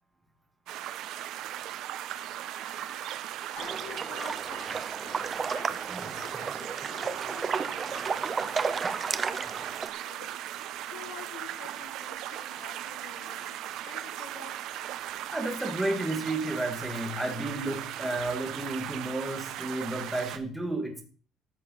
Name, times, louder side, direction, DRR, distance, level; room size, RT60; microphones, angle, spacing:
sound 1, 0.7-20.4, right 12 dB, 60° right, 1.0 m, -38 dB
voice 1, 2.4-3.1 5.9-6.1 15.3-21.0, right 2 dB, 5° right, 3 dB, 2.2 m, -32 dB
voice 2, 3.5-5.7 6.2-14.8, left 7 dB, 75° left, 1 dB, 4.2 m, -49 dB
sound 2, 3.6-9.9, right 5 dB, 20° right, 0.7 m, -33 dB
13.5 x 6.9 x 5.8 m, 0.41 s
cardioid pair, 170°, 0 cm